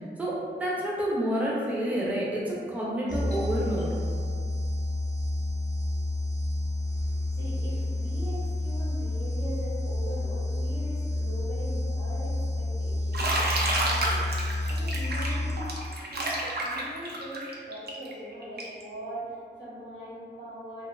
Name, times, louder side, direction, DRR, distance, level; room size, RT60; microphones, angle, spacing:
voice 1, 0.2-3.9, equal, 10° right, -6 dB, 0.5 m, -29 dB
sound 1, 3.1-16.2, left 1 dB, 40° left, 0.5 m, -30 dB
Doorbell, 3.3-8.7, right 1 dB, 90° left, 0.6 m, -51 dB
voice 2, 6.8-20.9, equal, 90° right, -10 dB, 1.0 m, -41 dB
Bathtub (filling or washing), 13.1-18.8, right 1 dB, 60° right, 0.4 m, -30 dB
2.5 x 2.2 x 2.2 m, 2.1 s
wide cardioid pair, 80°, 19 cm